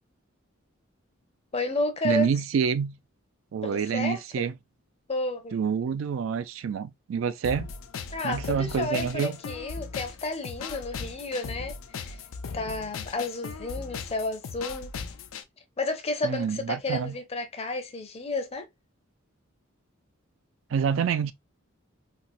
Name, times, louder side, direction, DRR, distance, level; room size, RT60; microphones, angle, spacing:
voice 1, 1.5-2.3 3.6-4.5 5.1-5.6 8.1-12.2 12.5-14.9 15.8-18.7, left 2 dB, 30° left, 0.6 m, -31 dB
voice 2, 2.0-3.0 3.5-4.5 5.5-7.7 8.2-9.3 16.2-17.1 20.7-21.3, right 6 dB, 70° right, 0.3 m, -27 dB
sound 1, 7.4-15.4, left 5 dB, 85° left, 0.5 m, -38 dB
4.2 x 2.1 x 2.3 m
head